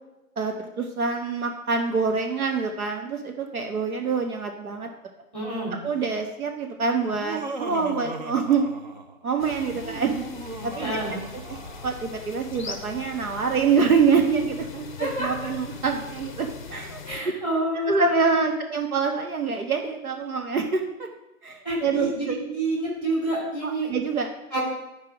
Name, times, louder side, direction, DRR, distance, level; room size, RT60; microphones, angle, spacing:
voice 1, 0.4-4.9 5.8-8.7 9.2-10.3 10.6-11.0 11.5-11.6 11.8-17.0 17.9-21.1 21.4-22.4 23.6-24.3, right 5 dB, 75° right, 4 dB, 1.2 m, -25 dB
voice 2, 5.3-5.8 10.8-11.2 15.0-15.3 17.0-18.6 21.6-23.9 24.5-24.6, right 1 dB, 10° right, -6 dB, 2.9 m, -28 dB
Laughter, 7.1-9.2 9.7-12.0, right 3 dB, 30° right, 0.6 m, -37 dB
sound 1, 9.4-17.2, left 5 dB, 35° left, 0.6 m, -41 dB
12.0 x 4.7 x 4.8 m, 0.95 s
hypercardioid pair, 150°, 44 cm